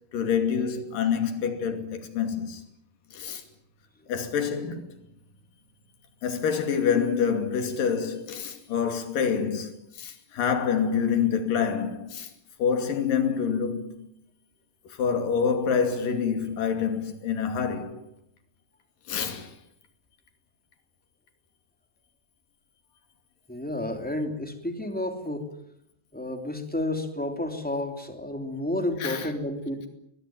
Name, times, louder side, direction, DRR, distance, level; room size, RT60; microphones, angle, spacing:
voice 1, 0.1-2.6 3.1-3.4 4.1-5.0 6.2-12.3 12.6-14.1 14.9-18.0 19.1-19.5 29.0-29.3, left 7 dB, 80° left, 4.2 m, -27 dB
voice 2, 23.5-25.5 26.1-29.9, left 1 dB, 5° left, 2.7 m, -31 dB
22.0 x 21.0 x 9.1 m
omnidirectional pair, 3.8 m